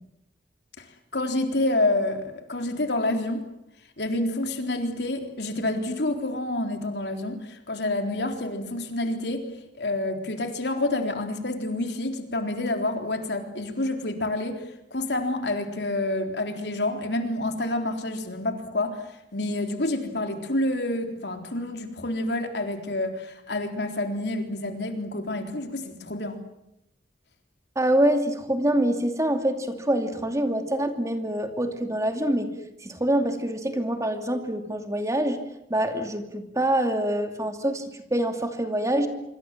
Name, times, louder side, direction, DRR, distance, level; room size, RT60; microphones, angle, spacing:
voice 1, 1.1-3.4 4.0-9.5 9.8-26.4, left 2 dB, 75° left, 5 dB, 3.7 m, -28 dB
voice 2, 27.8-32.5 32.8-35.4 35.7-37.8 38.1-39.1, right 1 dB, 20° right, 6 dB, 2.7 m, -25 dB
26.0 x 25.5 x 7.6 m, 0.84 s
head